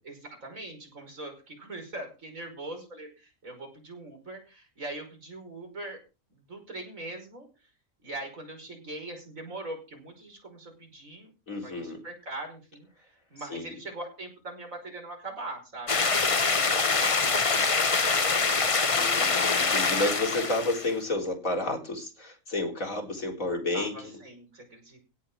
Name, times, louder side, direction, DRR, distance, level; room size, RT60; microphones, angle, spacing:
voice 1, 0.0-6.0 6.3-7.5 8.0-11.3 11.6-17.5 18.1-18.5 23.7-25.0, right 2 dB, 80° right, 4 dB, 5.9 m, -42 dB
voice 2, 11.5-12.0 13.5-13.8 18.9-24.1, left 2 dB, 80° left, 2 dB, 4.6 m, -31 dB
sound 1, 15.9-20.9, left 4 dB, 30° left, 0.8 m, -25 dB
16.5 x 5.9 x 7.7 m, 0.31 s
omnidirectional pair, 1.4 m